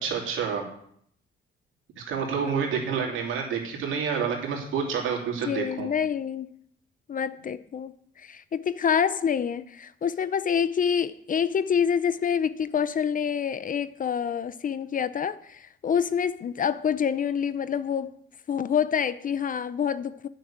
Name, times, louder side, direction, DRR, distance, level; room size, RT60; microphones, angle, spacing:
voice 1, 0.0-0.6 2.0-5.9, right 6 dB, 80° right, 2.9 m, -28 dB
voice 2, 5.5-6.5 7.1-7.9 8.2-18.1 18.5-20.3, left 7 dB, 45° left, 0.6 m, -27 dB
9.5 x 6.4 x 8.8 m
cardioid pair, 90°, 20 cm